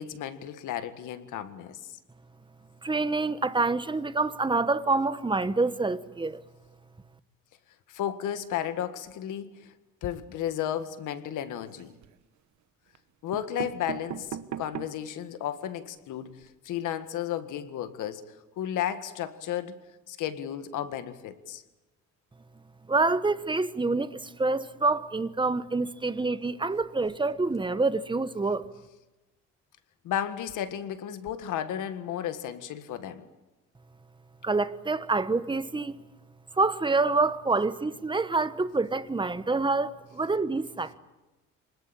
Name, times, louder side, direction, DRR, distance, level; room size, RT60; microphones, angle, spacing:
voice 1, 0.0-2.0 7.9-9.7 10.0-11.9 13.2-19.7 20.1-21.6 30.0-33.3, left 10 dB, 85° left, 1.8 m, -33 dB
voice 2, 2.8-6.4 22.9-28.7 34.4-36.0 36.5-41.0, right 3 dB, 15° right, 1.2 m, -27 dB
sound 1, 11.6-12.2 12.9-13.0 13.3-15.1 15.6-15.7 15.9-16.0 16.3-16.5, right 10 dB, 70° right, 1.2 m, -39 dB
25.5 x 20.5 x 8.8 m
cardioid pair, 90°, 30 cm